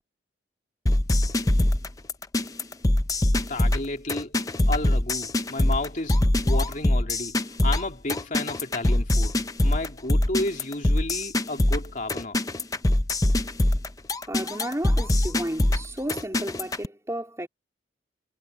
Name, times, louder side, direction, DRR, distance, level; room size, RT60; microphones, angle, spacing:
sound 1, 0.9-16.9, left 1 dB, 20° left, 0.7 m, -23 dB
voice 1, 3.5-4.3 4.7-6.2 6.4-7.4 7.6-9.3 9.6-12.4, left 2 dB, 45° left, 2.7 m, -32 dB
voice 2, 14.3-17.5, right 1 dB, 15° right, 3.6 m, -33 dB
head